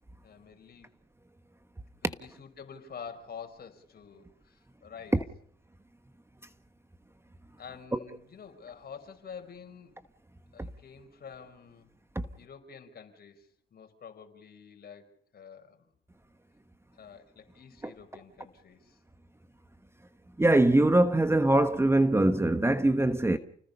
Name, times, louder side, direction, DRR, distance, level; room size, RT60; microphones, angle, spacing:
voice 1, 0.2-0.9 2.0-5.2 7.6-10.1 10.5-11.9 12.4-15.9 16.9-19.0, left 6 dB, 50° left, 5.1 m, -48 dB
voice 2, 20.4-23.4, right 1 dB, 15° right, 1.3 m, -23 dB
30.0 x 20.0 x 5.5 m
cardioid pair, 90°, 20 cm